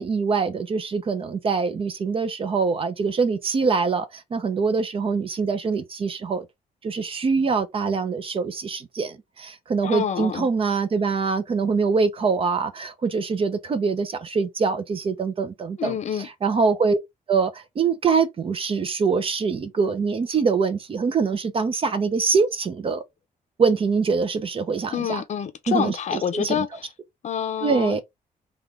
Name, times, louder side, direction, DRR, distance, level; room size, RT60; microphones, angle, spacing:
voice 1, 0.0-6.4 6.8-17.0 17.3-23.0 23.6-25.2 25.7-26.7 27.6-28.0, right 5 dB, 35° right, 0.6 m, -24 dB
voice 2, 9.8-10.5 15.8-16.3 24.9-26.9 27.2-28.0, left 8 dB, 50° left, 0.6 m, -27 dB
3.6 x 2.4 x 3.1 m
cardioid pair, 140°, 15 cm